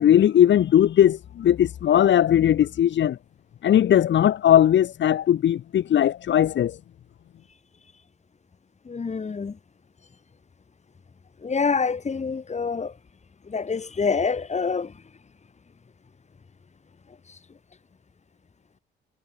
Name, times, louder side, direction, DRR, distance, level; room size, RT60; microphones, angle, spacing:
voice 1, 0.0-3.2 3.6-6.8, left 10 dB, 65° left, 3.8 m, -19 dB
voice 2, 8.9-9.6 11.4-12.9 13.5-14.9, left 5 dB, 35° left, 7.3 m, -26 dB
cardioid pair, 90°, 20 cm